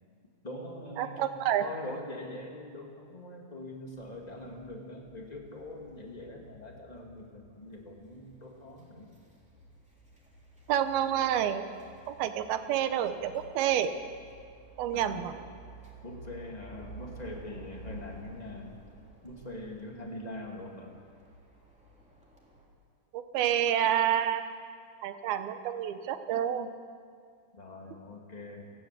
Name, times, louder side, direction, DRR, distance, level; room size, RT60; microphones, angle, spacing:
voice 1, 0.4-9.1 14.9-15.4 16.0-18.8 19.2-21.0 27.5-28.7, left 1 dB, 15° left, 0 dB, 1.4 m, -43 dB
voice 2, 1.0-1.6 10.7-11.7 12.1-13.9 14.8-15.3 23.1-24.5 25.0-26.7, right 10 dB, 85° right, 9 dB, 2.9 m, -28 dB
sound 1, 3.9-22.7, right 1 dB, ahead, 2.7 m, -52 dB
30.0 x 10.5 x 8.2 m, 2.2 s
omnidirectional pair, 4.3 m